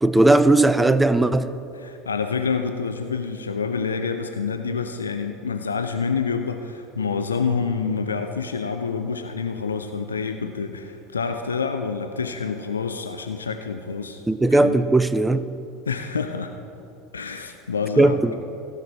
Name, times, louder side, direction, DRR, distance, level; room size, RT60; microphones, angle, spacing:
voice 1, 0.0-1.5 14.3-15.5 18.0-18.4, right 2 dB, 10° right, 0.4 m, -17 dB
voice 2, 1.7-14.2 14.5-14.8 15.9-16.5 17.1-18.4, left 5 dB, 80° left, 0.4 m, -27 dB
15.5 x 5.9 x 4.6 m
figure-of-eight pair, 75°, 0 cm